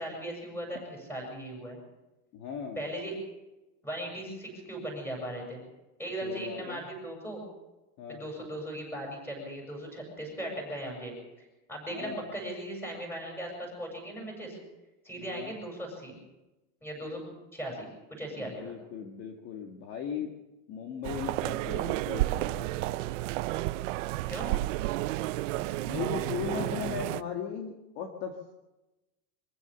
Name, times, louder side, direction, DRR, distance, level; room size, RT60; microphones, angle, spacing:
voice 1, 0.0-1.8 2.8-3.1 3.8-5.6 6.0-7.4 8.1-14.6 15.0-16.2 16.8-17.2 17.5-18.7 24.3-24.5, right 1 dB, 5° left, 0 dB, 7.1 m, -38 dB
voice 2, 2.3-2.8 6.2-6.8 8.0-8.2 11.9-12.3 15.2-15.5 18.4-20.3 20.7-23.1 25.8-28.5, left 7 dB, 35° left, 2 dB, 1.9 m, -38 dB
sound 1, 21.0-27.2, right 17 dB, 55° right, 0.6 m, -31 dB
24.5 x 15.5 x 6.9 m, 1.0 s
supercardioid pair, 180°, 45 cm